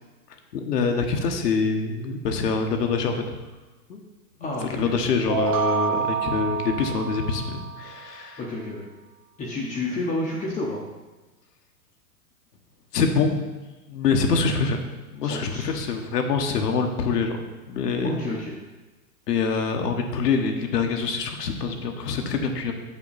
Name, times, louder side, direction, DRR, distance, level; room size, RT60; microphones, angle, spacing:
voice 1, 0.5-3.2 3.9-4.0 4.4-8.4 12.9-13.4 13.9-14.8 15.1-17.4 17.7-18.1 19.3-22.7, left 5 dB, 80° left, 4 dB, 1.2 m, -25 dB
voice 2, 4.4-4.9 8.4-8.8 9.4-10.8 15.2-15.7 18.0-18.6, left 2 dB, 15° left, -4 dB, 0.7 m, -30 dB
sound 1, 5.3-8.1, right 7 dB, 25° right, 0.3 m, -28 dB
5.9 x 5.8 x 4.0 m, 1.2 s
hypercardioid pair, 130°, 47 cm